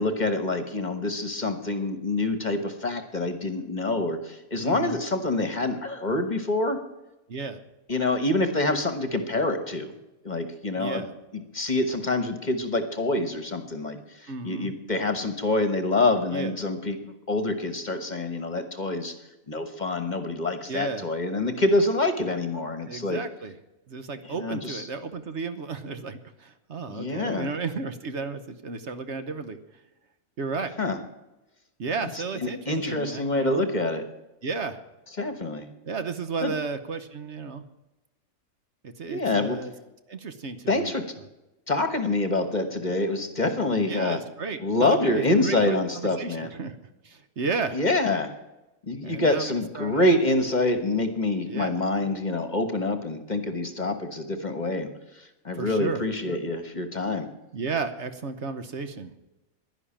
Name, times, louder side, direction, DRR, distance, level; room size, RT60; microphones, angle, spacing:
voice 1, 0.0-6.8 7.9-9.9 10.2-11.0 11.3-19.1 19.5-23.2 24.2-24.9 26.9-27.5 30.8-31.0 32.4-34.1 35.2-35.7 36.4-36.5 39.1-39.6 40.7-41.1 41.7-44.2 44.6-46.5 47.7-48.3 48.8-57.3, left 2 dB, 35° left, 9 dB, 1.2 m, -26 dB
voice 2, 4.6-5.0 7.3-7.6 10.8-11.1 14.3-14.7 16.3-16.5 20.7-21.1 22.9-23.5 23.9-29.6 30.4-30.7 31.8-33.7 34.4-34.8 35.8-37.6 38.8-39.7 40.1-40.9 43.8-46.8 47.0-47.8 49.0-50.2 51.5-51.8 55.5-56.1 57.5-59.2, right 4 dB, 55° right, 10 dB, 1.2 m, -33 dB
11.0 x 11.0 x 8.7 m, 1.0 s
omnidirectional pair, 1.4 m